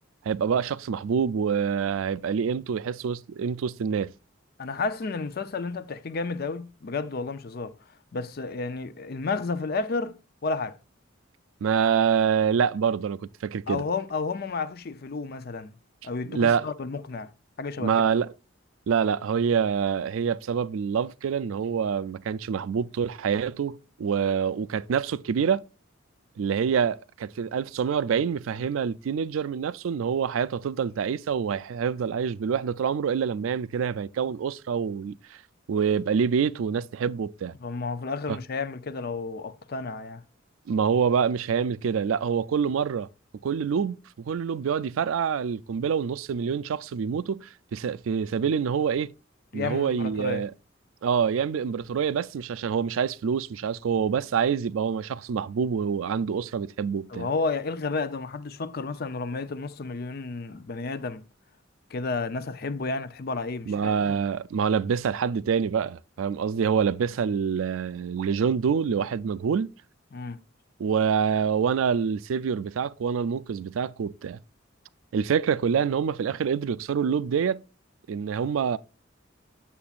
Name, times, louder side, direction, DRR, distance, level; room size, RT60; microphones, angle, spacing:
voice 1, 0.3-4.1 11.6-13.8 16.3-16.7 17.8-18.3 18.9-25.6 26.4-35.2 35.7-37.5 38.3-38.4 40.7-43.1 43.4-44.0 44.2-49.1 49.5-50.5 51.0-57.3 63.7-69.7 70.8-74.4 75.1-77.6 78.1-78.8, right 7 dB, 85° right, 0.4 m, -26 dB
voice 2, 4.6-7.7 8.1-10.8 13.7-15.7 16.0-17.3 17.6-17.9 37.6-40.2 49.5-50.4 57.1-61.2 61.9-63.9 70.1-70.4, left 4 dB, 50° left, 0.5 m, -31 dB
8.6 x 6.9 x 2.4 m
head